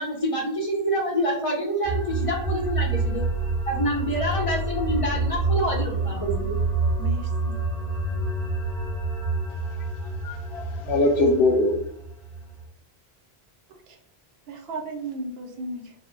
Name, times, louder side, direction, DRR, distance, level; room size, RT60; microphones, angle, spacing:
voice 1, 0.0-3.2 3.7-6.6, equal, 40° left, -2 dB, 0.5 m, -27 dB
sound 1, 1.8-12.6, right 3 dB, 5° left, 1.0 m, -28 dB
voice 2, 7.0-7.6 13.9-14.0 14.5-15.9, right 2 dB, 75° right, 3 dB, 0.8 m, -35 dB
voice 3, 9.8-11.8, left 2 dB, 80° left, 3 dB, 0.9 m, -23 dB
2.2 x 2.0 x 3.6 m, 0.69 s
omnidirectional pair, 1.1 m